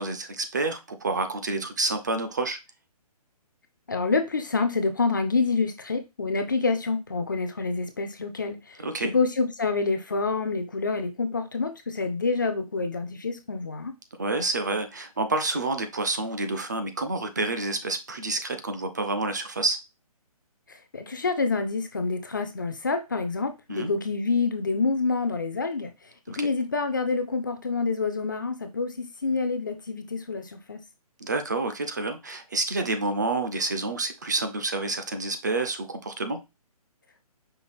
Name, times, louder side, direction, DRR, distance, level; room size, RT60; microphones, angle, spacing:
voice 1, 0.0-2.6 8.8-9.1 14.2-19.8 23.7-23.9 26.3-26.5 31.2-36.4, right 3 dB, 30° right, 0.4 m, -28 dB
voice 2, 3.9-13.9 20.7-25.9 26.3-30.8, left 4 dB, 30° left, 0.4 m, -27 dB
5.5 x 2.4 x 3.3 m
hypercardioid pair, 175°, 20 cm